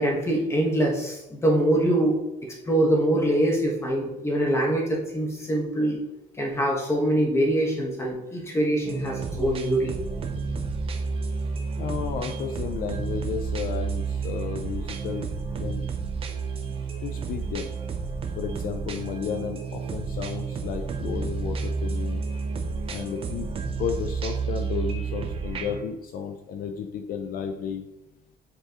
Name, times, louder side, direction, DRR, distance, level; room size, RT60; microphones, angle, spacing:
voice 1, 0.0-6.0 6.4-10.0, right 1 dB, 15° left, -1 dB, 1.4 m, -24 dB
sound 1, 8.8-25.8, right 5 dB, 30° right, 0.7 m, -31 dB
voice 2, 11.8-15.9 17.0-17.7 18.4-22.2 22.9-23.5 23.8-27.8, left 7 dB, 55° left, 5 dB, 0.5 m, -33 dB
7.8 x 4.4 x 3.1 m, 0.98 s
cardioid pair, 155°, 17 cm